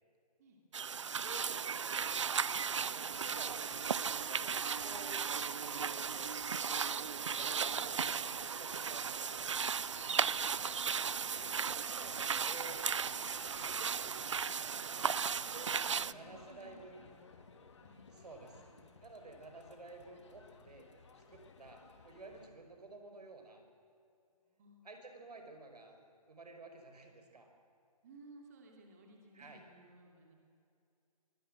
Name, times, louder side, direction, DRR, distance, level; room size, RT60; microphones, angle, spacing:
sound 1, 0.7-16.1, right 6 dB, 50° right, 0.5 m, -36 dB
voice 1, 1.2-4.6 4.8-6.5 7.4-9.6 10.1-12.9 13.5-14.5 15.5-15.7 16.1-17.0 18.1-18.5 19.0-20.9 21.2-23.6 24.8-26.0 26.3-27.5 29.3-29.6, right 3 dB, 90° right, 5 dB, 5.4 m, -53 dB
sound 2, 2.5-22.5, left 4 dB, 50° left, 2.2 m, -58 dB
voice 2, 15.7-18.8 24.3-25.0 28.0-30.4, right 1 dB, 25° right, 1 dB, 2.7 m, -60 dB
24.0 x 19.5 x 7.8 m, 2.5 s
hypercardioid pair, 175°, 20 cm